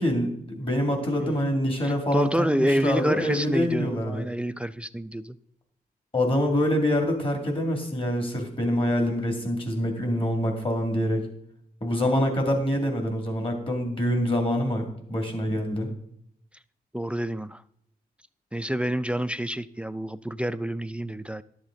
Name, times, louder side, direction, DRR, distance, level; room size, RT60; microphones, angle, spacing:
voice 1, 0.0-4.2 6.1-11.3 11.8-15.9, equal, 35° left, 3 dB, 2.3 m, -25 dB
voice 2, 1.8-5.4 12.8-12.9 16.9-17.6 18.5-21.4, equal, 5° right, 15 dB, 0.3 m, -28 dB
12.0 x 7.4 x 3.8 m, 0.72 s
wide cardioid pair, 100°, 16 cm